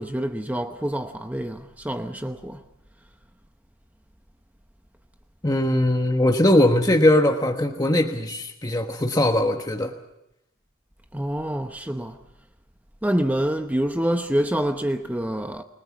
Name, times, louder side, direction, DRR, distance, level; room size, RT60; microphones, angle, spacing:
voice 1, 0.0-2.6 11.1-12.2 13.0-15.6, right 1 dB, 10° right, 0.9 m, -26 dB
voice 2, 5.4-9.9, left 1 dB, 20° left, 1.3 m, -20 dB
29.5 x 20.0 x 6.1 m
head